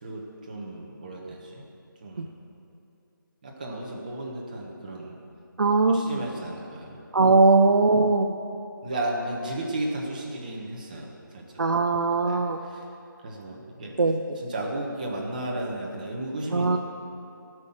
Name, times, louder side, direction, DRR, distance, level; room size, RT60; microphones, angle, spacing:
voice 1, 0.0-1.6 2.0-2.3 3.4-5.2 5.9-7.0 8.8-11.4 12.2-12.8 13.2-13.9 14.4-16.8, right 1 dB, 25° right, -1 dB, 1.3 m, -34 dB
voice 2, 5.6-6.2 7.1-8.4 11.6-12.6 14.0-14.4 16.5-16.8, right 3 dB, 65° right, 4 dB, 0.6 m, -20 dB
16.5 x 6.2 x 7.3 m, 2.7 s
figure-of-eight pair, 175°, 11 cm